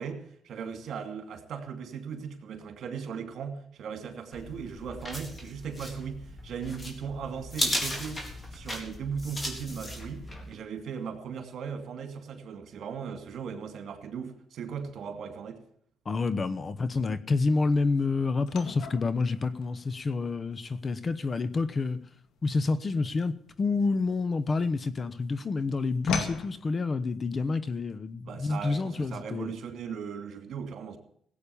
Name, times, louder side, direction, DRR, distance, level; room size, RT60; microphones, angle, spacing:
voice 1, 0.0-8.2 8.5-15.6 28.2-31.0, right 6 dB, 65° right, 2.6 m, -38 dB
sound 1, 4.3-10.5, left 1 dB, 20° left, 3.9 m, -36 dB
voice 2, 16.1-22.0 22.4-29.5, left 3 dB, 35° left, 1.0 m, -28 dB
sound 2, 18.5-24.9 25.2-26.5, left 5 dB, 80° left, 2.2 m, -39 dB
17.0 x 8.7 x 7.1 m
cardioid pair, 90°, 0 cm